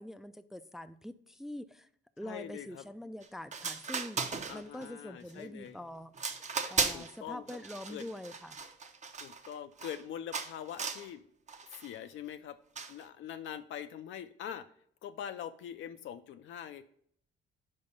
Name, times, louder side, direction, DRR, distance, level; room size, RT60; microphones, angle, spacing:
voice 1, 0.0-1.9 2.2-4.2 4.5-6.1 6.7-8.6, left 1 dB, ahead, 11 dB, 0.3 m, -44 dB
voice 2, 2.2-2.8 4.5-5.8 6.9-7.6 7.9-8.1 9.2-11.3 11.7-12.6 12.9-14.7 15.0-16.8, left 9 dB, 75° left, 9 dB, 0.5 m, -43 dB
sound 1, 3.2-3.3 3.5-4.9 5.3-5.7 6.1-7.2 7.5-10.0 10.3-11.1 11.5-11.9 12.8-13.0, right 5 dB, 35° right, 0.7 m, -36 dB
5.4 x 4.8 x 5.3 m, 0.62 s
cardioid pair, 90°, 20 cm